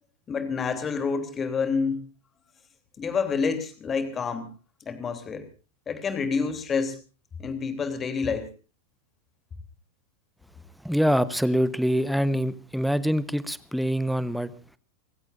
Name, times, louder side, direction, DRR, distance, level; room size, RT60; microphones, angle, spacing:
voice 1, 0.3-2.0 3.0-4.5 4.8-5.5 5.9-7.0 7.4-8.5, left 5 dB, 20° left, 8 dB, 3.2 m, -28 dB
voice 2, 10.8-14.5, equal, ahead, 16 dB, 1.1 m, -25 dB
30.0 x 16.0 x 2.6 m, 0.36 s
figure-of-eight pair, 90°, 0 cm